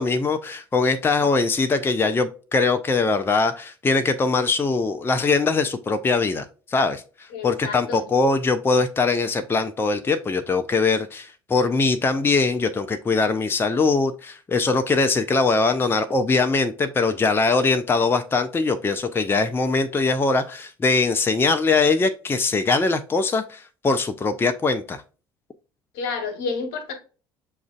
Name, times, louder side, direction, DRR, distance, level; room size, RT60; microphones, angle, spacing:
voice 1, 0.0-7.0 7.4-25.0, left 3 dB, 20° left, 0.5 m, -22 dB
voice 2, 7.3-8.0 25.9-26.9, left 4 dB, 70° left, 1.0 m, -30 dB
6.9 x 2.5 x 2.3 m
hypercardioid pair, 60°, 12 cm